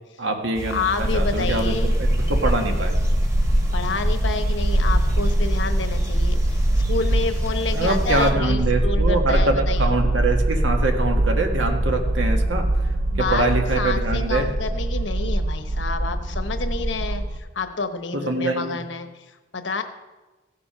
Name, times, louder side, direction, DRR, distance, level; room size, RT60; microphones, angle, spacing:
voice 1, 0.2-2.9 7.7-12.7 13.2-14.5 18.1-18.8, right 2 dB, 85° right, 3 dB, 1.7 m, -24 dB
sound 1, 0.5-8.3, right 1 dB, 15° right, 1.3 m, -33 dB
voice 2, 0.7-1.9 3.7-10.0 13.1-13.5 13.8-19.1 19.5-19.8, left 4 dB, 75° left, 8 dB, 1.0 m, -29 dB
sound 2, 1.0-17.4, right 1 dB, 50° right, 1.0 m, -22 dB
16.0 x 6.8 x 5.7 m, 1.2 s
head